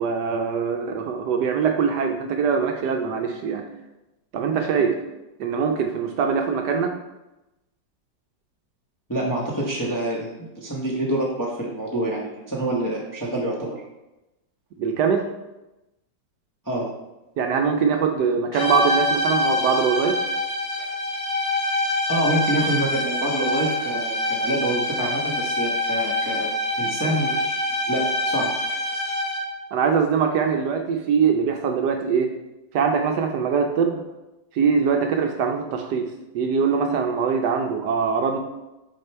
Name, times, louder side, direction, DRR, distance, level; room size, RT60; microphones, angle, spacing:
voice 1, 0.0-3.6 4.3-4.9 5.4-6.9 14.8-15.3 17.4-20.2 29.7-32.3 32.7-34.0 34.5-38.4, right 6 dB, 70° right, 4 dB, 1.1 m, -22 dB
voice 2, 9.1-13.8 16.6-16.9 22.1-26.5 26.8-27.5 27.9-28.5, right 1 dB, 15° left, -3 dB, 0.6 m, -26 dB
sound 1, 18.5-29.6, left 1 dB, 40° left, 1.0 m, -25 dB
6.4 x 4.2 x 4.5 m, 0.97 s
omnidirectional pair, 2.0 m